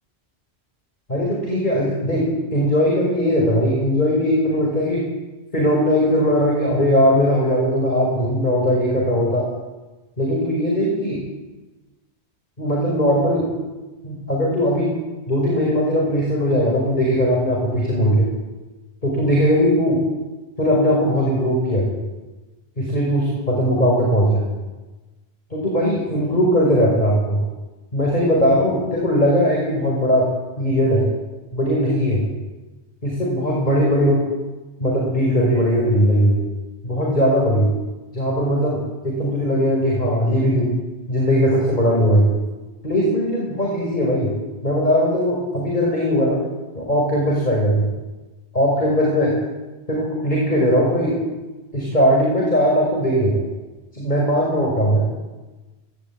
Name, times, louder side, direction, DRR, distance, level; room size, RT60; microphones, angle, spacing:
voice 1, 1.1-5.0 5.5-9.5 10.2-11.2 12.6-13.5 14.0-14.9 15.3-18.3 19.0-20.0 20.6-21.9 22.8-24.4 25.5-27.4 27.9-30.3 30.6-31.1 31.5-32.2 33.0-34.2 34.8-36.4 36.8-37.7 38.1-40.7 41.1-42.3 42.8-44.3 44.6-46.4 46.7-47.9 48.5-49.3 49.9-51.2 51.7-53.4 53.9-55.1, equal, 40° left, -3 dB, 5.3 m, -19 dB
18.0 x 17.0 x 8.7 m, 1.2 s
omnidirectional pair, 1.1 m